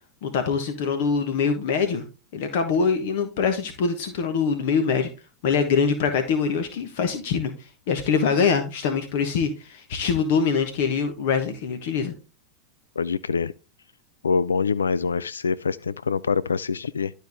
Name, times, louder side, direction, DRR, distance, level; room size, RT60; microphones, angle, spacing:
voice 1, 0.2-2.0 2.3-5.1 5.4-7.5 7.9-12.1, left 5 dB, 60° left, 1.2 m, -24 dB
voice 2, 13.0-13.5 14.2-17.1, left 5 dB, 85° left, 0.3 m, -25 dB
12.0 x 4.5 x 3.5 m
hypercardioid pair, 90°, 0 cm